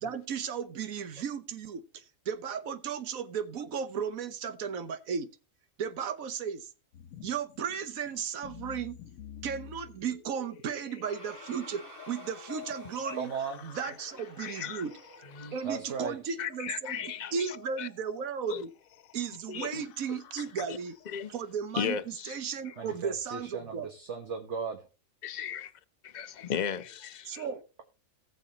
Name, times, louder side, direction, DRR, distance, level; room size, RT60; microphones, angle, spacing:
voice 1, 0.0-5.3 5.8-6.7 7.2-9.0 9.4-11.8 12.1-13.3 13.6-14.9 15.5-18.7 19.1-20.9 21.3-22.0 22.2-23.9 27.3-27.6, right 7 dB, 90° right, 1.4 m, -35 dB
sound 1, 6.9-21.6, left 9 dB, 80° left, 1.2 m, -51 dB
sound 2, 11.0-16.1, right 2 dB, 40° right, 2.0 m, -52 dB
voice 2, 13.1-13.6 15.6-16.3 22.8-24.9, right 5 dB, 60° right, 1.5 m, -36 dB
voice 3, 14.4-14.9 15.2-15.6 16.4-17.9 18.5-18.6 19.5-20.8 21.1-21.3 21.7-22.4 22.6-22.9 25.2-25.7 26.0-27.5, left 8 dB, 40° left, 0.8 m, -37 dB
19.0 x 6.8 x 2.9 m
omnidirectional pair, 1.4 m